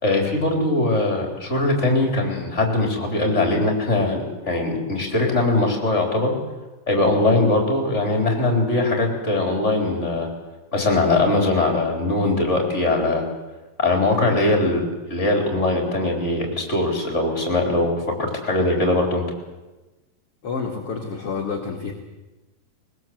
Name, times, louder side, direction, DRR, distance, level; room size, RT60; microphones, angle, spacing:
voice 1, 0.0-6.4 6.9-10.3 10.7-13.2 13.8-14.8 15.1-19.2, left 2 dB, 15° left, 2 dB, 3.9 m, -21 dB
voice 2, 20.4-21.9, left 5 dB, 45° left, 0 dB, 2.4 m, -28 dB
21.5 x 20.5 x 7.9 m, 1.1 s
omnidirectional pair, 4.8 m